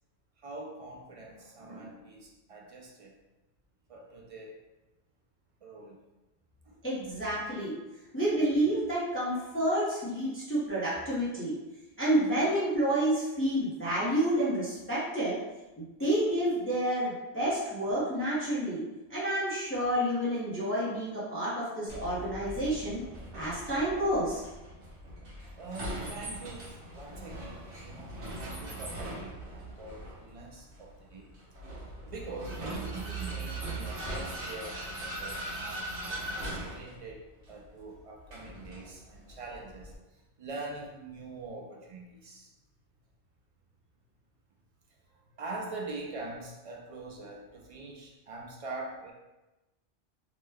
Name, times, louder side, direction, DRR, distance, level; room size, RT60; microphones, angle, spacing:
voice 1, 0.4-3.1 3.9-4.6 5.6-6.0 6.6-6.8 25.6-28.1 28.4-31.4 32.0-42.5 45.1-49.1, right 2 dB, 60° right, -1 dB, 0.3 m, -44 dB
voice 2, 6.8-7.7 8.1-11.5 12.0-15.4 15.8-23.0 23.3-24.4, right 1 dB, 15° left, -9 dB, 0.6 m, -29 dB
Vehicle, 21.9-39.9, right 1 dB, 85° right, 1.2 m, -40 dB
3.0 x 2.1 x 3.4 m, 1.1 s
omnidirectional pair, 1.1 m